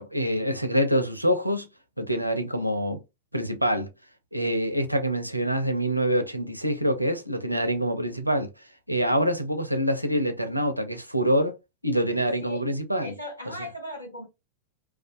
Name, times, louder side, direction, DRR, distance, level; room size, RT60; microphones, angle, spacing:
voice 1, 0.0-1.7 2.0-3.0 3.3-3.9 4.3-8.5 8.9-11.6 11.8-13.1 13.5-13.6, equal, 90° right, 0.4 m, -25 dB
voice 2, 12.1-12.6 13.0-14.2, left 1 dB, 85° left, 0.9 m, -38 dB
2.5 x 2.2 x 2.5 m
figure-of-eight pair, 90°, 0 cm